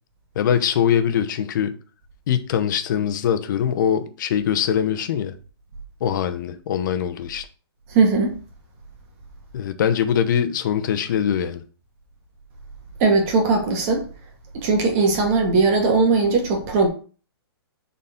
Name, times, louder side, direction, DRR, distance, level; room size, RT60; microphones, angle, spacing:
voice 1, 0.3-1.7 2.3-5.3 6.0-7.5 9.5-11.6, left 9 dB, 50° left, 0.9 m, -22 dB
voice 2, 7.9-8.3 13.0-14.0 14.6-16.9, right 3 dB, 35° right, 2.0 m, -19 dB
6.5 x 4.2 x 3.8 m
hypercardioid pair, 155°, 13 cm